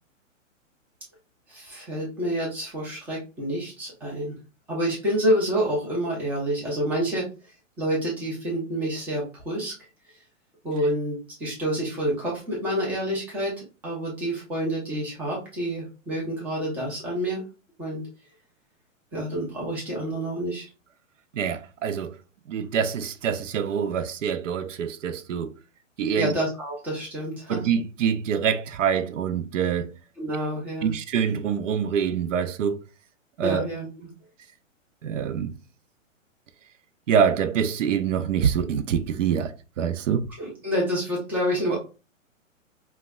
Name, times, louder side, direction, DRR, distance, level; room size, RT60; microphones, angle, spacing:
voice 1, 1.5-4.3 4.7-7.3 7.8-9.7 10.6-17.4 17.8-18.0 19.1-20.6 26.2-27.7 30.2-30.9 33.4-33.9 40.4-41.8, equal, 5° right, 0.4 m, -28 dB
voice 2, 21.3-22.2 22.5-25.5 26.0-26.3 27.5-29.9 30.8-32.8 33.4-33.6 35.0-35.5 37.1-40.3, right 7 dB, 70° right, 0.6 m, -25 dB
4.7 x 2.1 x 2.2 m
hypercardioid pair, 135°, 39 cm